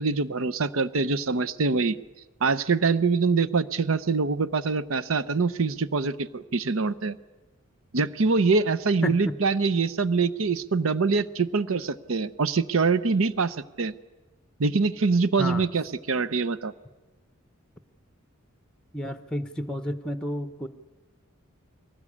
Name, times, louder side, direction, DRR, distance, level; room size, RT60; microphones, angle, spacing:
voice 1, 0.0-2.0 2.4-7.2 7.9-13.9 14.6-16.7, right 4 dB, 80° right, 14 dB, 0.7 m, -24 dB
voice 2, 9.0-9.3 15.4-15.6 18.9-20.7, left 1 dB, 5° left, 10 dB, 0.7 m, -30 dB
22.5 x 18.5 x 8.5 m, 1.2 s
head